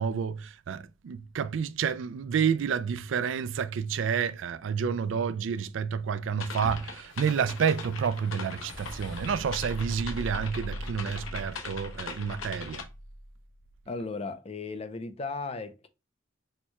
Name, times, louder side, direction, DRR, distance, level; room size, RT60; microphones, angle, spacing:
voice 1, 0.0-12.9, right 7 dB, 65° right, 0.3 m, -29 dB
sound 1, 6.4-12.8, left 5 dB, 90° left, 0.9 m, -41 dB
sound 2, 7.0-13.4, equal, 65° left, 1.6 m, -42 dB
voice 2, 13.9-15.9, left 3 dB, 30° left, 0.5 m, -36 dB
4.4 x 2.2 x 4.5 m
head